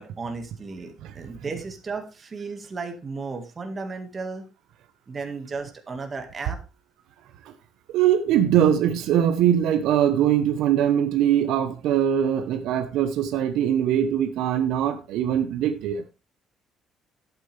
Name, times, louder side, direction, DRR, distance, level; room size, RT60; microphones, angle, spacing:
voice 1, 0.0-4.5 5.1-6.6, right 4 dB, 20° right, 1.8 m, -34 dB
voice 2, 7.9-16.0, right 10 dB, 75° right, 1.0 m, -22 dB
11.5 x 8.6 x 3.4 m
cardioid pair, 170°, 0 cm